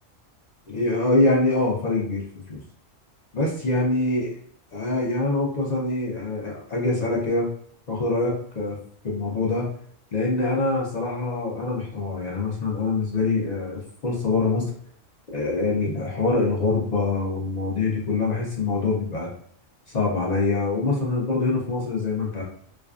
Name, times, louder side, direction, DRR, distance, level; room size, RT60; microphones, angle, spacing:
voice 1, 0.7-2.6 3.3-4.3 4.7-7.5 7.9-8.8 9.0-9.7 10.1-14.7 15.3-19.3 19.9-22.4, left 3 dB, 55° left, -4 dB, 0.4 m, -24 dB
2.4 x 2.2 x 2.4 m, 0.63 s
omnidirectional pair, 1.3 m